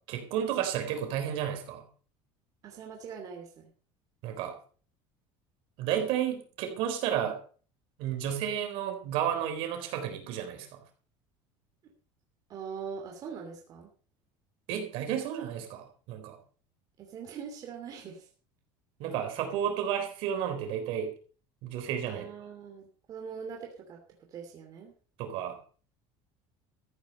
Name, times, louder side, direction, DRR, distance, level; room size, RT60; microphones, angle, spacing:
voice 1, 0.1-1.9 4.2-4.5 5.8-7.4 8.0-10.8 14.7-16.4 19.0-21.1 21.6-22.3 25.2-25.6, right 9 dB, 60° right, 5 dB, 3.9 m, -32 dB
voice 2, 2.6-3.7 11.8-11.9 12.5-13.9 17.0-18.3 22.1-24.0 24.3-24.9, right 6 dB, 35° right, 1 dB, 2.9 m, -42 dB
14.5 x 9.6 x 5.5 m, 0.42 s
cardioid pair, 160°, 11 cm